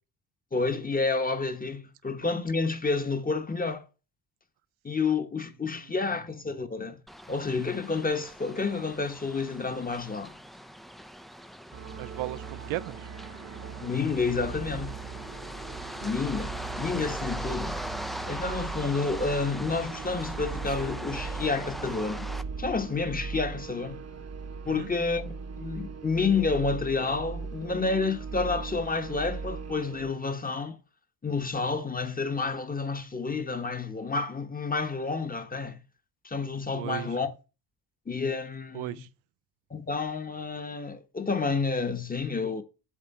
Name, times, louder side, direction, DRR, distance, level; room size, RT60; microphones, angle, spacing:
voice 1, 0.5-3.8 4.8-7.0 7.3-10.4 13.8-14.9 16.0-17.8 18.3-22.3 22.6-24.0 24.6-30.8 31.2-35.8 36.2-37.3 38.1-39.0 39.7-42.6, left 4 dB, 20° left, 1.0 m, -30 dB
voice 2, 5.8-6.2 12.0-13.1 16.0-16.2 24.7-24.9 36.7-37.2 38.7-39.1, right 16 dB, 90° right, 0.6 m, -36 dB
sound 1, 7.1-22.4, equal, ahead, 0.3 m, -40 dB
sound 2, 11.7-30.1, right 5 dB, 35° right, 0.9 m, -39 dB
7.5 x 3.7 x 5.3 m
supercardioid pair, 75°, 46 cm